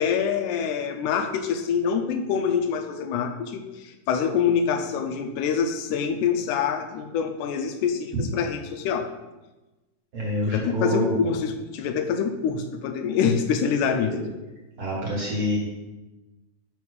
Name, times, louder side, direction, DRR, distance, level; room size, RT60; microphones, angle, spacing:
voice 1, 0.0-9.1 10.5-14.1, left 7 dB, 85° left, 6 dB, 2.1 m, -25 dB
voice 2, 10.1-11.1 14.0-14.2 14.8-15.6, equal, 55° right, -4 dB, 1.8 m, -27 dB
5.4 x 5.2 x 4.7 m, 1.1 s
omnidirectional pair, 3.6 m